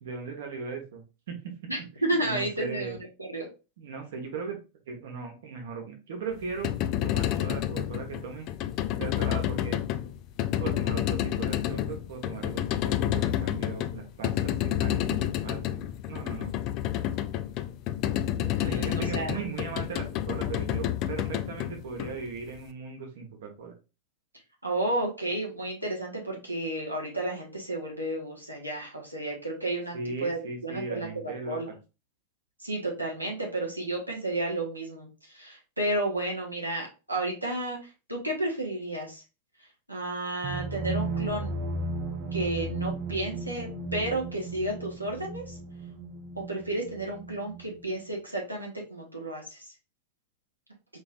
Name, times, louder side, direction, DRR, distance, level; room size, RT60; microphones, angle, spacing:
voice 1, 0.0-1.5 2.2-3.0 3.8-4.6 4.9-6.7 7.0-8.5 9.0-9.8 10.6-15.8 16.1-16.5 18.6-23.7 29.9-31.7, right 5 dB, 60° right, 3 dB, 1.1 m, -38 dB
voice 2, 1.7-3.5 18.4-19.3 24.6-31.7 32.6-37.8 38.1-39.2 39.9-41.5 42.3-45.6 46.3-49.7, right 1 dB, 85° right, -2 dB, 1.3 m, -32 dB
sound 1, 6.4-22.6, left 12 dB, 40° left, 0.3 m, -29 dB
sound 2, 40.4-48.1, right 2 dB, 40° right, 0.5 m, -35 dB
4.4 x 3.1 x 2.4 m, 0.30 s
figure-of-eight pair, 90°, 0 cm